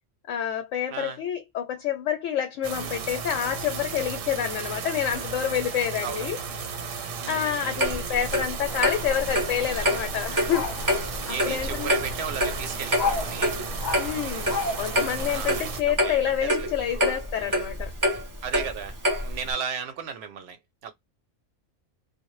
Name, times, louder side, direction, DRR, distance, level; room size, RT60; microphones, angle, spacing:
voice 1, 0.3-6.4 7.3-10.7 11.5-11.9 14.0-14.5 14.8-17.9, left 9 dB, 85° left, 0.9 m, -28 dB
voice 2, 0.9-1.2 2.8-2.9 6.0-6.3 7.2-7.9 11.3-13.6 15.2-16.7 16.9-17.1 17.4-17.6 18.4-20.9, right 7 dB, 65° right, 0.7 m, -35 dB
sound 1, 2.6-15.8, right 5 dB, 85° right, 1.0 m, -34 dB
Clock, 7.8-19.5, equal, 30° right, 0.3 m, -27 dB
sound 2, 8.6-15.4, left 4 dB, 50° left, 0.6 m, -35 dB
2.0 x 2.0 x 3.0 m
omnidirectional pair, 1.3 m